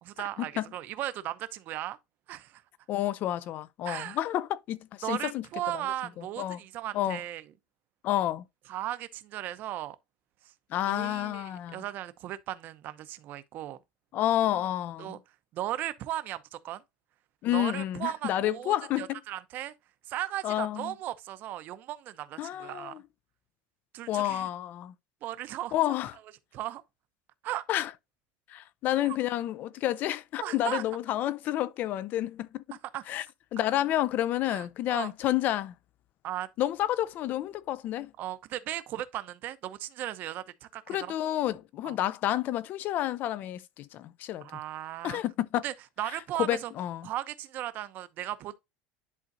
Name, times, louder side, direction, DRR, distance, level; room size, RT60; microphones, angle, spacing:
voice 1, 0.0-2.0 2.3-2.6 3.8-4.2 5.0-7.4 8.7-10.0 10.9-13.8 15.0-15.2 15.5-16.8 17.5-19.7 20.1-22.9 23.9-24.5 25.2-25.8 26.5-26.8 27.4-27.6 29.0-29.2 30.4-30.8 32.9-33.0 34.5-35.1 36.2-36.5 38.2-41.1 41.8-42.0 44.4-45.2 45.6-46.7 47.0-48.5, right 13 dB, 45° right, 0.7 m, -36 dB
voice 2, 2.9-5.4 5.7-5.8 6.2-6.6 6.9-7.2 8.0-8.4 10.7-11.8 14.1-15.2 17.4-19.2 20.4-20.9 22.4-23.0 24.1-24.9 25.7-26.1 27.7-27.9 28.5-32.6 33.1-33.2 33.5-35.7 36.6-38.1 40.9-44.5 45.0-45.6 46.4-47.1, left 13 dB, 40° left, 0.5 m, -30 dB
11.0 x 3.7 x 2.7 m
cardioid pair, 155°, 5 cm